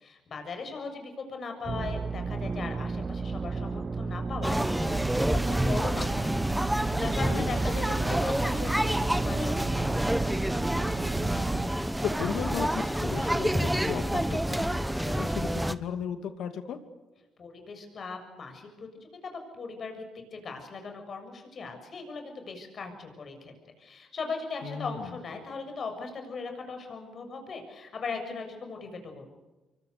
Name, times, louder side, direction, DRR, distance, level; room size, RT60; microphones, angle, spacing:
voice 1, 0.0-6.3 6.7-9.9 17.4-18.9 19.2-29.3, left 4 dB, 50° left, 5 dB, 6.9 m, -39 dB
sound 1, 1.6-11.7, right 4 dB, 35° right, 0.8 m, -33 dB
sound 2, 4.4-15.8, right 1 dB, 5° right, 1.1 m, -28 dB
voice 2, 11.2-16.8 24.6-25.1, left 7 dB, 75° left, 8 dB, 2.5 m, -36 dB
26.5 x 24.0 x 6.8 m, 1.1 s
cardioid pair, 90°, 0 cm